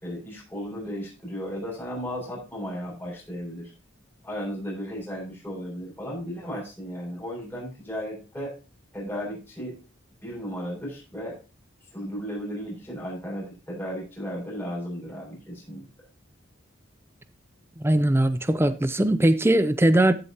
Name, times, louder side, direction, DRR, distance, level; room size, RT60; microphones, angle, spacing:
voice 1, 0.0-3.7 4.2-8.5 8.9-9.8 10.2-11.4 11.9-15.9, equal, 10° left, 6.0 m, -35 dB
voice 2, 17.8-20.1, right 1 dB, 10° right, 0.5 m, -20 dB
14.5 x 7.7 x 2.9 m
head